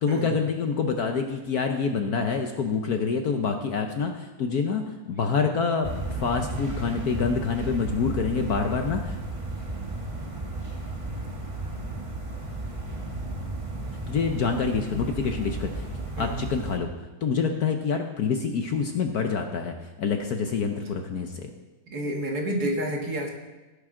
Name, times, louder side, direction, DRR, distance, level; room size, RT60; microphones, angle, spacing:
voice 1, 0.0-4.8 5.1-9.1 14.1-15.8 16.2-16.9 17.2-21.5, left 5 dB, 60° left, 5 dB, 1.2 m, -26 dB
sound 1, 5.8-16.8, right 2 dB, 20° right, 1.1 m, -34 dB
voice 2, 16.2-16.5 21.9-23.3, right 1 dB, 50° right, 1 dB, 2.1 m, -29 dB
16.0 x 10.5 x 3.8 m, 1.1 s
omnidirectional pair, 2.2 m